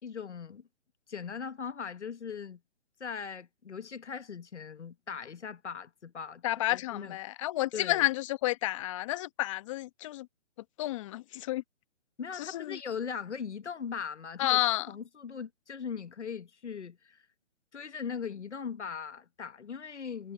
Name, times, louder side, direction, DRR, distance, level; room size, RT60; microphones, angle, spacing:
voice 1, 0.0-0.7 1.1-2.6 3.0-6.4 6.7-7.2 7.7-8.1 12.2-14.6 14.9-17.2 17.7-20.3, left 6 dB, 85° left, 1.4 m, -39 dB
voice 2, 6.4-10.3 10.8-11.6 12.4-12.8 14.4-14.9, left 16 dB, 30° left, 1.1 m, -30 dB
hypercardioid pair, 150°, 34 cm